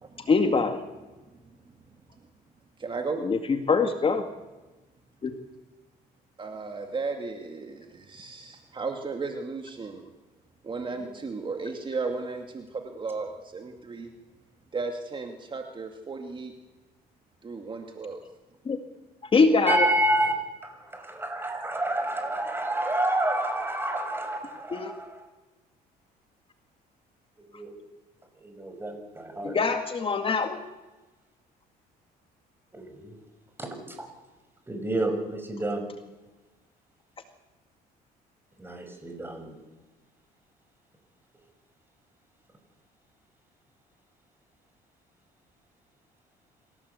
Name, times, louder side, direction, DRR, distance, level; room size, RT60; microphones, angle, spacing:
voice 1, 0.3-0.8 3.2-4.3 5.2-5.3 18.7-18.8 19.3-19.9 24.7-24.9 29.4-30.6, left 4 dB, 30° left, 7 dB, 2.1 m, -23 dB
voice 2, 2.8-3.2 6.4-10.1 10.6-14.1 14.7-16.5 17.4-18.2, right 4 dB, 30° right, 4 dB, 2.4 m, -35 dB
voice 3, 19.7-20.4 20.6-25.3 27.5-27.7 28.4-29.6 32.7-33.1 33.6-34.1 34.7-35.8 38.6-39.6, right 1 dB, 15° right, 5 dB, 6.1 m, -29 dB
26.5 x 17.0 x 8.3 m, 1.1 s
cardioid pair, 110°, 17 cm